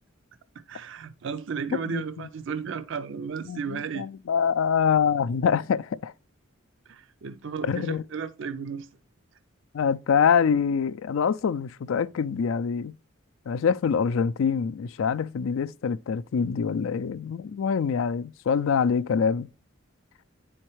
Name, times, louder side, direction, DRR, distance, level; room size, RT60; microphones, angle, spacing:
voice 1, 0.7-4.1 6.9-8.9, right 6 dB, 60° right, 0.4 m, -34 dB
voice 2, 1.9-2.3 3.5-6.1 7.7-8.0 9.7-13.0 13.5-19.5, left 6 dB, 70° left, 0.4 m, -25 dB
10.0 x 4.3 x 3.0 m
head